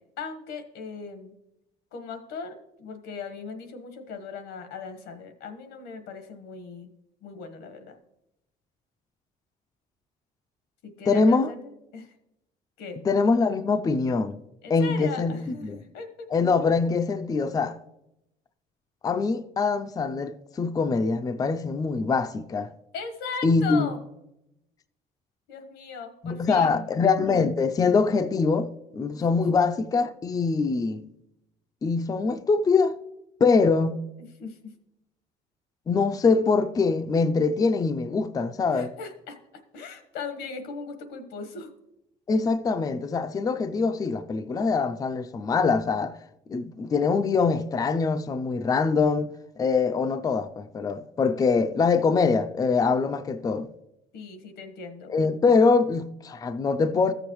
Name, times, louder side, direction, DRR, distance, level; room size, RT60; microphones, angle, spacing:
voice 1, 0.0-1.4 1.9-6.9 7.2-7.9 10.8-12.1 12.8-13.0 14.6-16.3 22.9-24.0 25.5-26.9 29.3-29.4 34.4-34.7 38.7-39.4 39.7-41.7 54.1-55.1, left 5 dB, 90° left, 1.3 m, -38 dB
voice 2, 11.1-11.5 13.1-14.4 14.7-15.8 16.3-17.8 19.0-22.7 23.4-23.9 26.2-31.1 31.8-32.9 33.4-34.0 35.9-38.9 42.3-46.1 46.5-49.3 49.6-53.7 55.1-57.1, left 4 dB, 20° left, 0.4 m, -23 dB
14.0 x 6.9 x 3.0 m
cardioid pair, 110°, 17 cm